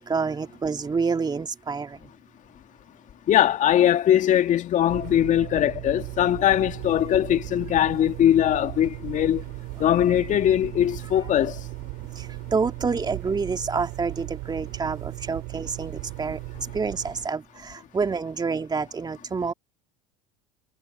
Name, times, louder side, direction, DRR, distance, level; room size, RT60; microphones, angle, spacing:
voice 1, 0.0-2.0 12.5-16.4 16.7-19.5, right 5 dB, 20° right, 2.7 m, -28 dB
voice 2, 3.3-9.4 9.8-11.6, left 11 dB, 40° left, 2.1 m, -21 dB
sound 1, 4.9-17.3, right 26 dB, 60° right, 4.9 m, -37 dB
hypercardioid pair, 75°, 19 cm